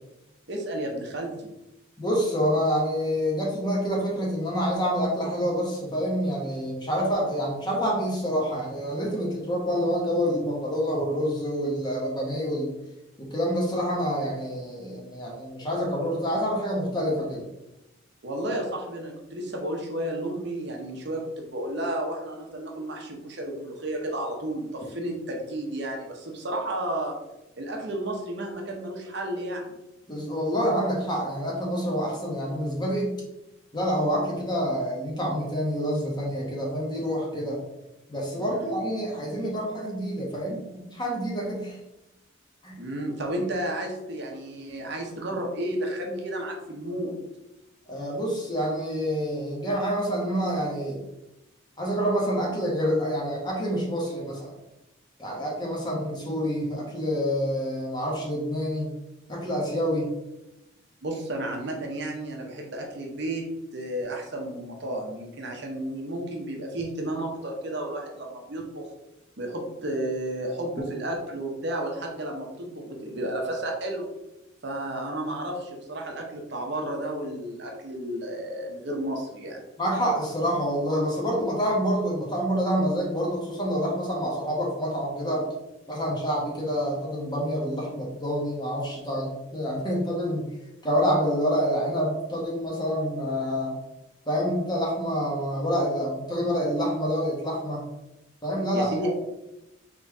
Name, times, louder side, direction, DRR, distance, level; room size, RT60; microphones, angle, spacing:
voice 1, 0.5-1.5 18.2-27.2 27.6-29.7 38.4-38.7 42.8-47.2 61.0-63.5 63.7-68.9 69.4-74.1 74.6-79.6 98.7-99.1, right 1 dB, 55° right, 1 dB, 0.8 m, -32 dB
voice 2, 2.0-12.7 13.2-17.5 30.1-33.2 33.7-37.6 38.1-41.8 42.6-42.8 47.9-51.0 51.8-54.5 55.2-58.9 59.3-60.1 79.8-85.5 85.9-90.4 90.8-93.7 94.3-97.8 98.4-99.1, equal, 20° left, -3 dB, 1.0 m, -27 dB
4.0 x 3.1 x 3.5 m, 0.95 s
head